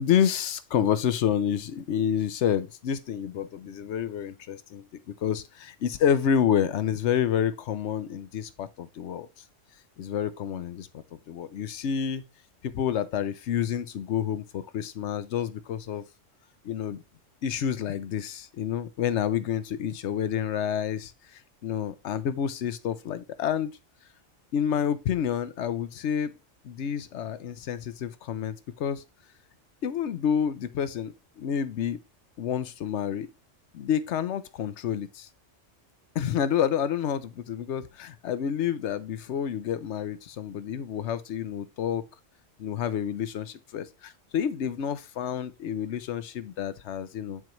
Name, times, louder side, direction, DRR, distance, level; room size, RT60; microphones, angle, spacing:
voice 1, 0.0-4.8 5.2-9.3 10.0-10.9 11.3-12.2 12.6-16.0 16.6-17.0 17.4-23.8 24.5-26.4 26.6-29.0 29.8-32.0 32.4-33.3 33.7-35.3 36.1-42.0 42.6-47.4, left 8 dB, 70° left, 0.9 m, -29 dB
9.6 x 4.5 x 3.0 m
omnidirectional pair, 1.3 m